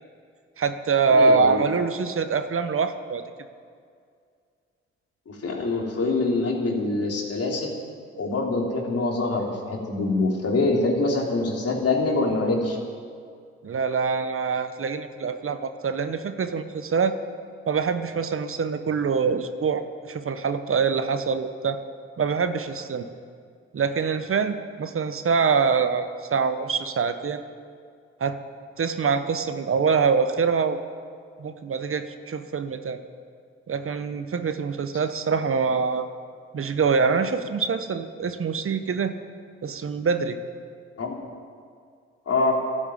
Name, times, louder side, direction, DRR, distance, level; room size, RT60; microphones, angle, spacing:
voice 1, 0.6-3.2 13.6-17.2 17.7-21.8 22.2-23.1 23.7-27.4 28.2-28.4 28.8-30.8 31.4-33.0 33.7-36.1 36.5-39.1 39.6-40.4, right 5 dB, 45° right, 10 dB, 1.1 m, -24 dB
voice 2, 1.1-1.6 5.3-7.7 8.2-12.8 41.0-41.1 42.3-42.5, left 3 dB, 55° left, 0 dB, 3.4 m, -24 dB
12.0 x 12.0 x 8.8 m, 2.2 s
hypercardioid pair, 45°, 29 cm